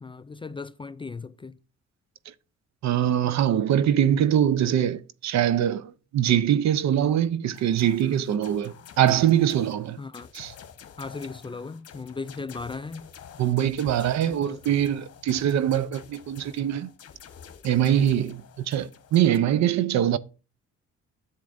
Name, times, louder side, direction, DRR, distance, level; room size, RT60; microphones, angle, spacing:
voice 1, 0.0-1.6 10.0-10.3 11.0-13.1 14.3-14.6, left 4 dB, 20° left, 0.3 m, -37 dB
voice 2, 2.8-10.0 10.3-10.5 13.4-16.9 17.6-20.2, right 10 dB, 65° right, 0.6 m, -23 dB
sound 1, 7.5-19.4, left 7 dB, 50° left, 1.2 m, -48 dB
10.5 x 7.4 x 2.6 m
cardioid pair, 90°, 30 cm